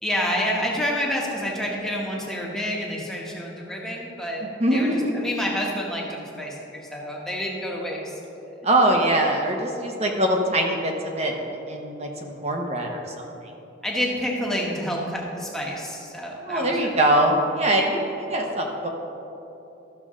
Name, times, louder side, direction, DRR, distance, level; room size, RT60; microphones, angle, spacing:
voice 1, 0.0-4.4 4.7-8.5 13.8-16.9, equal, 5° left, -3 dB, 1.2 m, -28 dB
voice 2, 4.4-5.1 8.6-13.0 13.4-13.5 16.4-18.9, right 1 dB, 35° right, 1 dB, 0.9 m, -23 dB
13.0 x 6.8 x 3.7 m, 2.9 s
head